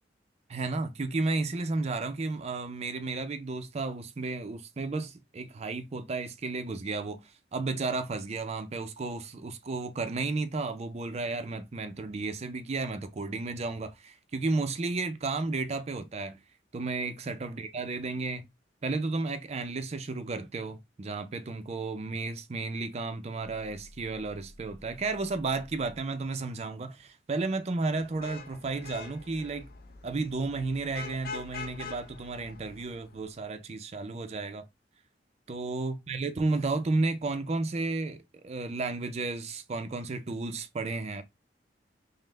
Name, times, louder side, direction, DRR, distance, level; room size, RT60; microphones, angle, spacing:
voice 1, 0.5-16.4 16.7-18.5 18.8-29.7 30.0-34.6 35.5-41.2, right 3 dB, 35° right, 0.4 m, -33 dB
sound 1, 23.4-26.2, equal, 90° left, 0.9 m, -53 dB
Vehicle horn car horn honking / Traffic noise roadway noise, 28.0-33.3, left 5 dB, 55° left, 0.5 m, -44 dB
5.4 x 2.0 x 3.2 m
head